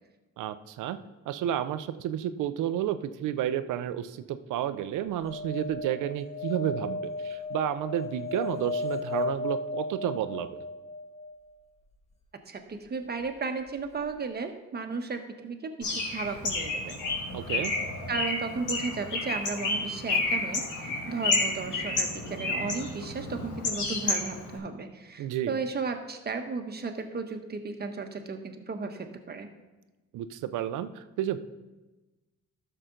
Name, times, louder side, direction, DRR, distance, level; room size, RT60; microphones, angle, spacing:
voice 1, 0.4-1.0 1.3-10.6 17.3-17.7 25.2-25.6 30.1-31.4, right 11 dB, 85° right, 12 dB, 0.6 m, -31 dB
sound 1, 5.2-11.4 13.7-13.8 14.0-14.1, left 3 dB, 20° left, 1.5 m, -35 dB
voice 2, 12.5-16.9 18.1-20.8 21.1-29.5, right 4 dB, 35° right, 5 dB, 1.2 m, -34 dB
Bird, 15.8-24.6, left 3 dB, 85° left, 2.5 m, -31 dB
12.5 x 6.7 x 3.8 m, 1.1 s
cardioid pair, 90°, 30 cm